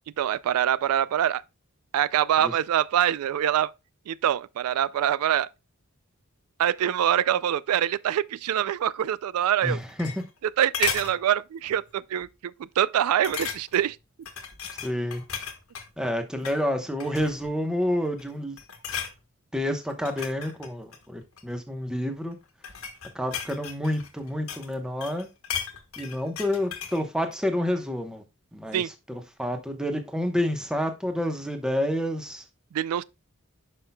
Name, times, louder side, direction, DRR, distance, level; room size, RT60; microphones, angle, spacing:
voice 1, 0.2-1.4 1.9-3.7 4.1-5.5 6.6-9.8 10.4-14.0 28.7-28.9 32.7-33.0, right 10 dB, 90° right, 0.3 m, -24 dB
sound 1, 9.6-10.5 10.7-11.2 11.7-11.9 12.2-12.3 13.2-13.9 14.3-15.9 16.3-16.6 17.0-17.5 18.0-18.3 18.6-19.2 19.9-21.5 22.3-24.7 25.0-27.0 27.3-27.4, left 7 dB, 75° left, 1.3 m, -35 dB
voice 2, 9.6-10.1 14.7-15.2 16.0-18.6 19.5-22.4 23.1-25.3 26.0-28.2 28.5-28.8 29.1-32.4, left 1 dB, 5° right, 0.9 m, -29 dB
9.8 x 5.6 x 2.2 m
head